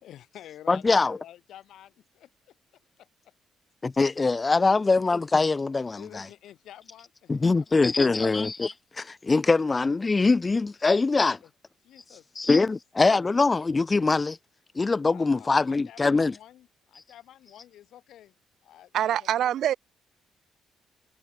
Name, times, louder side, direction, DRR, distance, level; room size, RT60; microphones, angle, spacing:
voice 1, 0.0-2.6 3.0-3.3 4.7-4.8 5.9-8.2 11.4-11.5 11.8-12.7 15.0-18.3 18.6-19.6, left 12 dB, 70° left, 5.3 m, -50 dB
voice 2, 0.7-1.2 3.8-6.2 7.3-11.4 12.4-14.4 14.8-16.3, left 3 dB, 20° left, 0.3 m, -23 dB
voice 3, 18.9-19.7, right 11 dB, 60° right, 0.6 m, -24 dB
cardioid pair, 155°, 0 cm